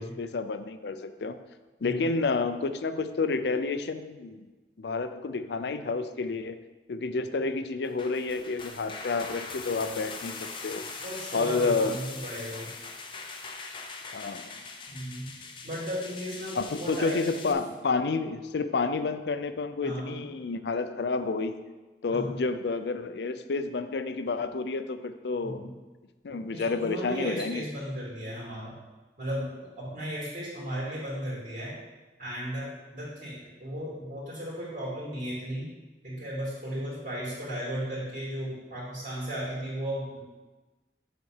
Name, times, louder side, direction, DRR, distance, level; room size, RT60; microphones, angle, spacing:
voice 1, 0.0-1.4 1.8-4.4 4.8-6.6 6.9-10.9 11.3-12.0 14.1-14.5 16.6-21.6 22.0-25.7 26.2-27.6, left 4 dB, 75° left, 11 dB, 0.5 m, -30 dB
sound 1, 7.8-17.5, left 4 dB, 30° left, 0.6 m, -41 dB
voice 2, 11.0-12.7 14.9-15.3 15.6-17.5 19.8-20.3 22.1-22.3 25.4-25.7 26.5-28.7 29.2-29.5 29.8-31.7 32.2-35.7 36.0-40.2, equal, 50° right, -8 dB, 2.6 m, -35 dB
7.3 x 4.1 x 6.5 m, 1.2 s
head